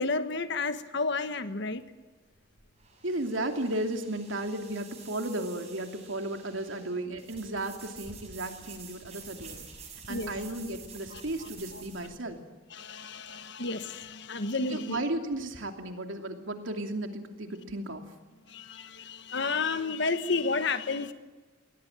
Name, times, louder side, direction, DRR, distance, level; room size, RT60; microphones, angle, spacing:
voice 1, 0.0-1.8 10.1-10.3 11.1-12.1 12.7-15.0 18.5-21.1, left 3 dB, 65° left, 10 dB, 1.4 m, -32 dB
sound 1, 1.8-12.2, right 5 dB, 35° right, 5.9 m, -49 dB
voice 2, 3.0-9.6 10.1-12.4 14.7-18.0, right 1 dB, 80° right, 5 dB, 2.8 m, -34 dB
22.0 x 18.0 x 9.5 m, 1.3 s
head